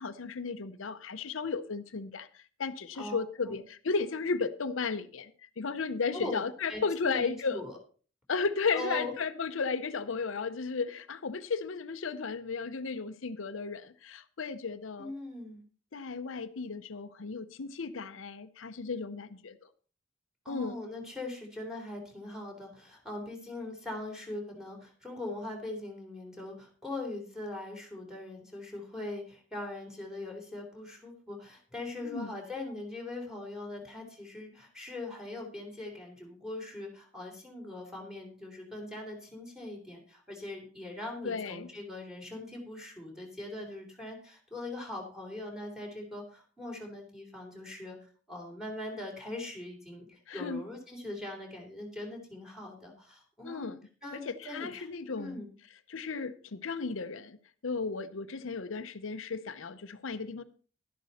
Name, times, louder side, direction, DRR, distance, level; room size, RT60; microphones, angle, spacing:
voice 1, 0.0-7.6 8.3-15.1 15.9-19.7 20.5-20.8 32.0-32.3 41.2-41.7 50.3-50.6 53.4-53.8 54.1-55.4 55.9-57.4 57.6-60.4, left 4 dB, 75° left, 10 dB, 0.7 m, -34 dB
voice 2, 3.0-3.6 6.1-7.8 8.7-9.1 15.0-15.6 20.5-48.0 48.3-53.7 54.0-54.9 55.2-55.5, left 2 dB, 5° right, -2 dB, 3.6 m, -41 dB
12.0 x 10.5 x 4.2 m, 0.39 s
head